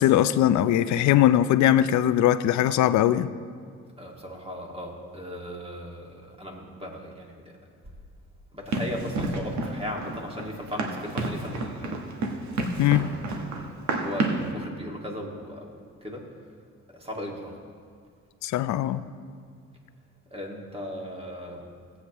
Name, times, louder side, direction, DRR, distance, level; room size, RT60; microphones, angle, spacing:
voice 1, 0.0-3.3 12.8-13.0 18.4-19.0, left 12 dB, 70° left, 13 dB, 0.5 m, -20 dB
voice 2, 4.0-7.6 8.5-12.0 12.6-16.3 16.9-17.6 20.3-21.7, equal, 20° right, 0 dB, 2.0 m, -37 dB
Run, 8.7-14.5, right 3 dB, 70° right, 1.3 m, -30 dB
17.5 x 8.3 x 3.0 m, 2.1 s
cardioid pair, 90°, 30 cm